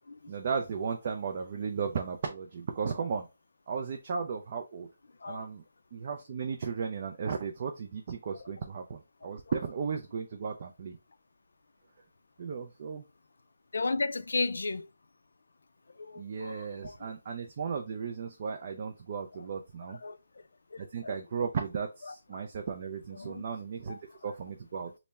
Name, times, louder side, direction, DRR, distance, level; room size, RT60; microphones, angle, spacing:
voice 1, 0.3-3.3 3.7-4.9 5.3-5.6 5.9-11.0 12.4-13.0 16.2-20.0 20.8-24.9, right 6 dB, 30° right, 0.3 m, -35 dB
voice 2, 13.7-14.9 16.0-16.7 20.0-20.2 20.7-21.1 23.2-23.4 23.9-24.0, left 3 dB, 70° left, 0.4 m, -33 dB
3.4 x 2.0 x 4.0 m
hypercardioid pair, 180°, 0 cm